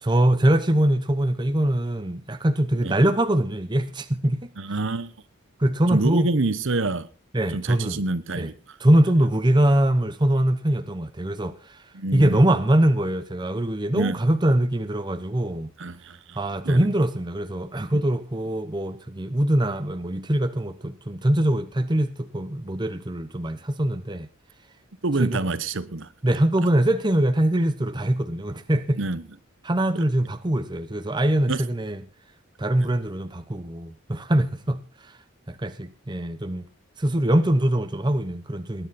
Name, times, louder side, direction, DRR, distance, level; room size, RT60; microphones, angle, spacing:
voice 1, 0.0-4.5 5.6-6.3 7.3-8.0 8.4-8.5 8.8-11.8 12.1-15.7 16.4-24.3 25.2-25.4 26.2-29.0 29.6-32.0 32.6-35.2 35.5-36.6 37.0-38.9, right 1 dB, 20° right, 0.8 m, -23 dB
voice 2, 4.6-5.1 5.9-7.1 7.5-8.8 11.9-12.4 13.9-14.2 15.8-16.9 25.0-26.1 29.0-29.2 29.9-30.0 31.5-31.6, right 3 dB, 60° right, 0.9 m, -27 dB
20.0 x 10.0 x 4.2 m
head